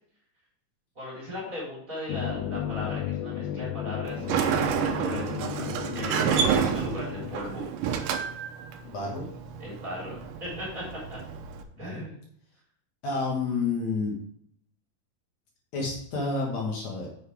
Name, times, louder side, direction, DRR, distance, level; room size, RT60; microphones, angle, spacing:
voice 1, 1.0-5.6 5.9-7.7 9.6-11.2 11.8-12.2, left 1 dB, 25° right, -5 dB, 4.5 m, -37 dB
sound 1, 2.1-7.4, left 10 dB, 80° left, 2.2 m, -34 dB
Sliding door, 4.1-11.6, right 8 dB, 80° right, 2.4 m, -29 dB
voice 2, 8.8-9.2 11.8-12.0 13.0-14.1 15.7-17.1, left 3 dB, 60° left, -2 dB, 3.1 m, -29 dB
9.8 x 7.6 x 3.5 m, 0.66 s
omnidirectional pair, 3.8 m